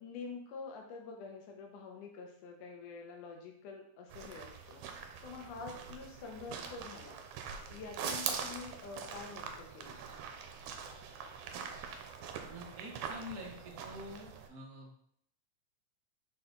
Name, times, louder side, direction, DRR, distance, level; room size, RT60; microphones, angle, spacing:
voice 1, 0.0-4.8 5.2-7.2 7.7-10.0, left 4 dB, 85° left, 2 dB, 2.6 m, -47 dB
sound 1, 4.1-14.5, right 6 dB, 80° right, 2.0 m, -43 dB
voice 2, 12.5-14.9, left 1 dB, 55° right, -2 dB, 1.0 m, -47 dB
5.8 x 4.4 x 3.8 m, 0.66 s
omnidirectional pair, 3.5 m